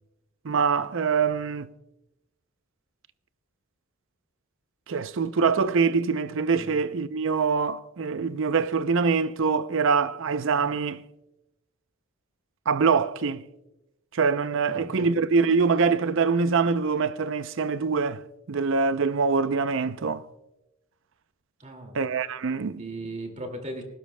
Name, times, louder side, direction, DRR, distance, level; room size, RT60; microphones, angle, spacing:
voice 1, 0.4-1.7 4.9-11.0 12.7-13.4 14.1-18.2 18.5-20.2 21.9-22.8, right 5 dB, 65° right, 0.5 m, -24 dB
voice 2, 14.7-15.1 21.6-22.0 22.8-23.8, right 1 dB, 35° right, 2.2 m, -37 dB
19.5 x 17.0 x 2.2 m
head